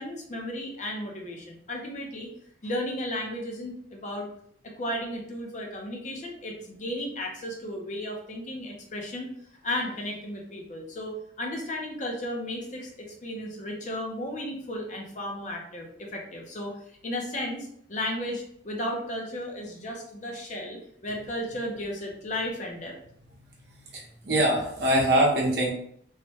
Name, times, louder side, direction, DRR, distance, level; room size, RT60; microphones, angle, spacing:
voice 1, 0.0-2.3 2.6-4.3 4.6-9.3 9.6-16.7 17.0-22.9, left 1 dB, 40° left, 0 dB, 0.5 m, -34 dB
voice 2, 23.9-25.7, right 1 dB, 55° right, -2 dB, 0.8 m, -23 dB
3.1 x 2.1 x 2.8 m, 0.67 s
head